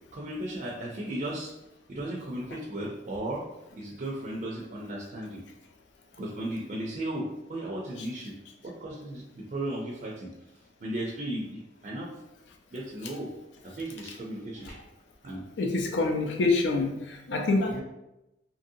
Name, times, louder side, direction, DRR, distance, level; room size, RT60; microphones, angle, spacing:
voice 1, 0.1-1.5 1.9-3.4 3.7-5.4 6.2-8.4 8.6-10.3 10.8-12.1 12.7-13.3 13.6-14.8 15.2-15.4 17.7-17.8, right 1 dB, 45° right, -3 dB, 0.4 m, -35 dB
voice 2, 15.6-17.8, left 3 dB, 80° left, 2 dB, 0.5 m, -26 dB
2.9 x 2.6 x 2.6 m, 0.93 s
head